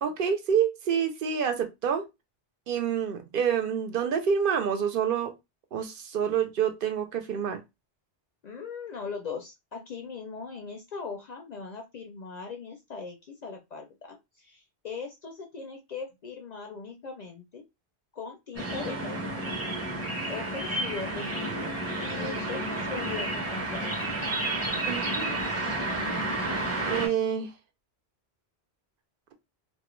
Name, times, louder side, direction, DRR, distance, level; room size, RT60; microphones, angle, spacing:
voice 1, 0.0-2.0 2.7-5.3 5.7-7.6 24.8-25.4 26.8-27.5, right 7 dB, 65° right, 0.7 m, -27 dB
voice 2, 8.4-13.2 13.4-17.6 18.1-19.5 20.3-24.1, left 5 dB, 55° left, 0.5 m, -39 dB
sound 1, 18.6-27.1, right 2 dB, 15° right, 0.6 m, -31 dB
2.3 x 2.1 x 3.0 m
omnidirectional pair, 1.0 m